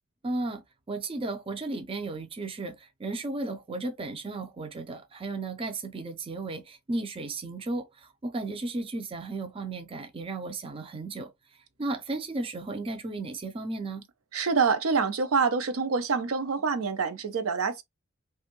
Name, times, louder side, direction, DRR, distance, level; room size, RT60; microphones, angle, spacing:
voice 1, 0.2-0.6 0.9-11.3 11.8-14.0, right 2 dB, 25° right, 0.4 m, -34 dB
voice 2, 14.3-17.8, right 5 dB, 75° right, 0.5 m, -26 dB
2.6 x 2.3 x 2.9 m
head